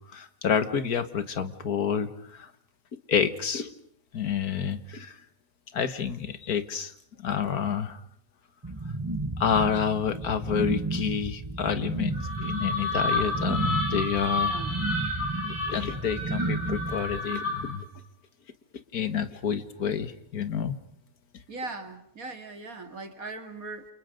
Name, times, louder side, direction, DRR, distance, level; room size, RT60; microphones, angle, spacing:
voice 1, 0.1-2.5 3.1-3.7 4.1-5.2 5.7-6.9 7.2-8.0 9.4-14.5 15.5-17.8 18.9-20.8, left 7 dB, 80° left, 10 dB, 2.0 m, -29 dB
sound 1, 8.6-17.2, right 2 dB, 15° right, 0.9 m, -32 dB
sound 2, 12.1-17.8, left 2 dB, 45° left, 7.1 m, -31 dB
voice 2, 21.5-23.9, right 3 dB, 70° right, 6 dB, 2.8 m, -39 dB
29.5 x 28.0 x 5.3 m, 0.65 s
omnidirectional pair, 1.6 m